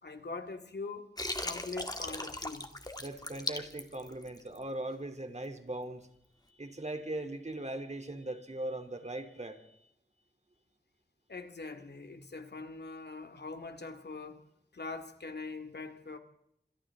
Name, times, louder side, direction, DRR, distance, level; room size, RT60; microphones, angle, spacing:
voice 1, 0.0-1.1 1.4-2.7 11.3-14.4 14.7-16.2, left 3 dB, 85° left, 2.3 m, -42 dB
Water, 1.2-4.6, left 1 dB, 25° left, 2.2 m, -38 dB
voice 2, 3.0-6.1 6.6-9.8, right 1 dB, 45° right, 3.3 m, -39 dB
28.0 x 26.5 x 3.8 m
wide cardioid pair, 75°, 17 cm